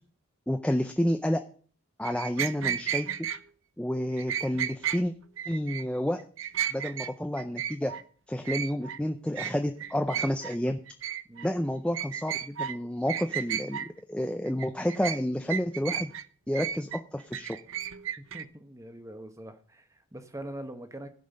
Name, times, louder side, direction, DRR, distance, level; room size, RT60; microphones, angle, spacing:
voice 1, 0.5-1.4 2.0-3.1 3.8-5.1 5.5-6.2 6.7-7.9 8.3-10.8 11.4-16.1 16.5-17.6, equal, 5° left, 0.5 m, -30 dB
sound 1, 2.0-3.4 4.2-5.0 5.4-5.8 6.2-7.1 7.4-8.0 8.4-9.0 9.4-9.5 9.8-10.6 10.9-11.5 11.9-12.8 13.1-13.9 14.5-15.2 15.5-16.2 16.5-18.4, right 9 dB, 65° right, 0.6 m, -33 dB
voice 2, 18.2-21.1, right 1 dB, 15° right, 1.1 m, -43 dB
15.0 x 5.4 x 6.6 m
head